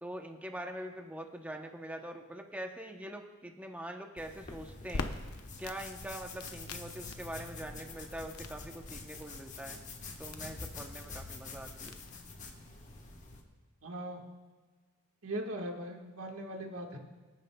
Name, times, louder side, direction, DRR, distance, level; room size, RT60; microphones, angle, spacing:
voice 1, 0.0-5.0 5.6-9.8 10.2-12.0, right 1 dB, 5° right, 3 dB, 0.7 m, -43 dB
sound 1, 4.2-13.4, left 3 dB, 35° left, 1.2 m, -47 dB
Crackle, 4.9-12.2, left 3 dB, 85° left, 0.7 m, -46 dB
voice 2, 13.8-14.2 15.2-17.0, right 1 dB, 70° right, 2 dB, 1.5 m, -39 dB
25.0 x 9.3 x 2.2 m, 1.3 s
head